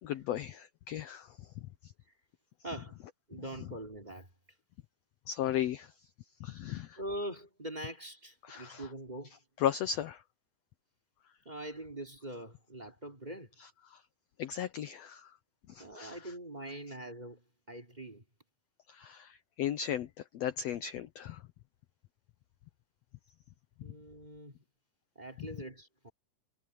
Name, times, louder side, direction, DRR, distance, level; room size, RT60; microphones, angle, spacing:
voice 1, 0.0-1.4 1.8-1.9 5.3-5.9 6.4-7.0 8.4-8.9 9.6-10.2 13.6-14.0 14.4-15.3 15.7-16.3 18.9-20.1 20.3-21.4, left 10 dB, 70° left, 1.6 m, -36 dB
voice 2, 2.6-3.0 3.3-4.3 7.0-9.4 11.4-13.5 15.8-18.2 23.8-24.6 25.1-26.1, right 1 dB, 15° right, 3.0 m, -43 dB
omnidirectional pair, 3.8 m